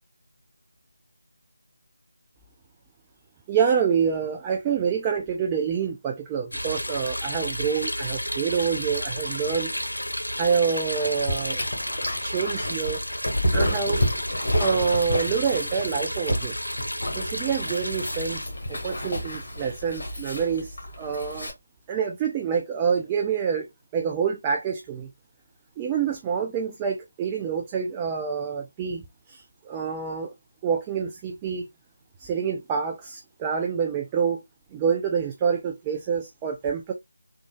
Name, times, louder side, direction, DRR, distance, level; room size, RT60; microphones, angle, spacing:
voice 1, 3.5-9.7 10.4-11.6 12.2-13.0 13.5-14.0 14.6-16.6 17.1-21.5 21.9-23.7 23.9-25.1 25.8-30.3 30.6-31.7 32.2-34.4 34.7-36.9, right 6 dB, 15° right, 0.3 m, -27 dB
sound 1, 6.5-18.5, equal, 85° left, 0.7 m, -32 dB
Dog, 10.9-21.5, equal, 55° left, 1.5 m, -30 dB
3.6 x 2.4 x 2.2 m
figure-of-eight pair, 160°, 0 cm